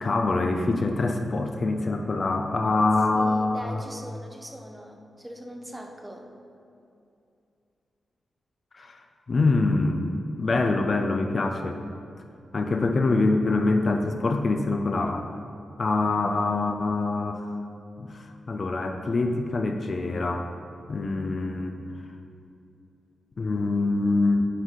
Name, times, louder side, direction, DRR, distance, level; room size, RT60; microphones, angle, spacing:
voice 1, 0.0-3.8 8.7-9.0 9.3-11.8 12.5-15.3 15.8-17.5 18.0-20.5 20.9-21.8 23.4-24.4, left 3 dB, 40° left, 4 dB, 0.4 m, -25 dB
voice 2, 3.2-6.3, equal, 10° right, 2 dB, 0.6 m, -41 dB
9.5 x 3.9 x 4.0 m, 2.6 s
wide cardioid pair, 140°, 0 cm